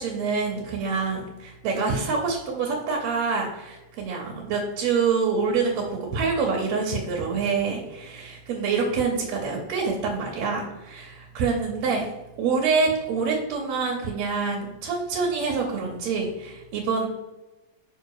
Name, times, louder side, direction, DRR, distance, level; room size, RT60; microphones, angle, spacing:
voice 1, 0.0-12.1 12.4-17.1, right 4 dB, 70° right, -1 dB, 2.0 m, -26 dB
5.7 x 4.6 x 4.7 m, 1.1 s
omnidirectional pair, 3.5 m